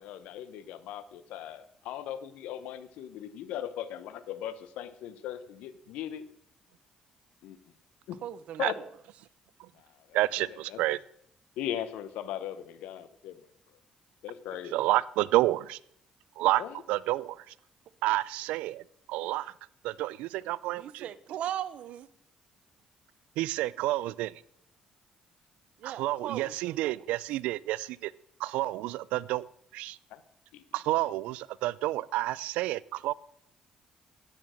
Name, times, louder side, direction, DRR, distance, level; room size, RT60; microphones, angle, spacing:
voice 1, 0.0-6.3 7.4-7.6 8.1-8.2 8.6-8.8 9.7-10.8 11.6-13.4 14.2-14.7 16.6-16.8 30.1-30.2 30.5-30.6, left 10 dB, 85° left, 14 dB, 0.8 m, -39 dB
voice 2, 8.2-8.9 20.8-22.1 25.8-27.0, right 11 dB, 70° right, 15 dB, 0.8 m, -38 dB
voice 3, 10.1-11.0 14.7-15.8 16.4-16.6 16.9-17.4 18.0-19.5 19.8-21.1 23.4-24.3 25.8-28.1 28.4-29.5 29.7-30.0 30.7-33.1, right 17 dB, 85° right, 21 dB, 0.4 m, -29 dB
12.0 x 8.9 x 6.3 m, 0.72 s
supercardioid pair, 75°, 2 cm